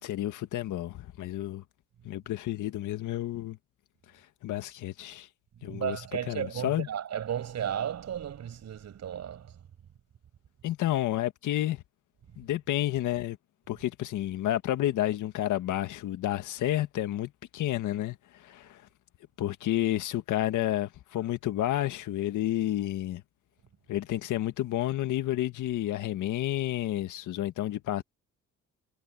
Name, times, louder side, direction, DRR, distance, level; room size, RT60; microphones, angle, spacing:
voice 1, 0.0-1.6 2.0-3.6 4.4-5.3 5.6-6.0 6.3-6.9 10.6-11.8 12.4-13.4 13.7-18.8 19.4-23.2 23.9-28.0, left 13 dB, 80° left, 1.8 m, -30 dB
voice 2, 5.7-9.6, right 9 dB, 60° right, 6.6 m, -34 dB
cardioid pair, 90°, 30 cm